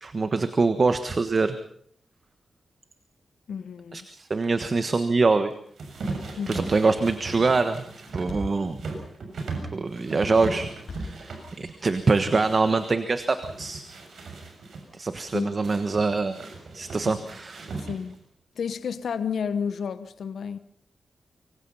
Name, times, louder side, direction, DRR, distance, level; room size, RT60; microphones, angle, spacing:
voice 1, 0.0-1.6 3.9-5.5 6.5-7.8 8.1-8.8 9.7-10.7 11.0-13.8 14.9-16.4 16.7-17.7, right 3 dB, 35° right, 1.3 m, -24 dB
voice 2, 3.5-4.1 6.4-6.7 15.3-15.6 17.1-17.2 17.8-18.2 18.6-20.6, left 6 dB, 90° left, 1.2 m, -31 dB
sound 1, 5.8-12.9 13.3-14.9 15.6-18.2, right 3 dB, 80° right, 6.9 m, -38 dB
Thump thud, 8.3-12.3, left 2 dB, 55° left, 8.0 m, -40 dB
25.0 x 24.5 x 5.6 m
wide cardioid pair, 170°, 0 cm